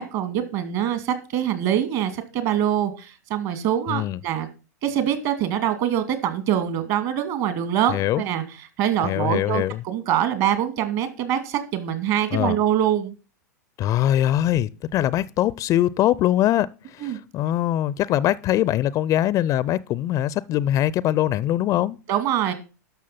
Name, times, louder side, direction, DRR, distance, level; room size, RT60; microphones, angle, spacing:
voice 1, 0.0-4.5 4.8-8.4 8.8-13.1 17.0-17.2 22.1-22.5, right 10 dB, 50° right, 2.5 m, -24 dB
voice 2, 3.9-4.2 7.9-8.2 9.0-9.8 12.3-12.6 13.8-22.0, left 13 dB, 35° left, 0.5 m, -22 dB
12.5 x 6.1 x 5.8 m
figure-of-eight pair, 95°, 10 cm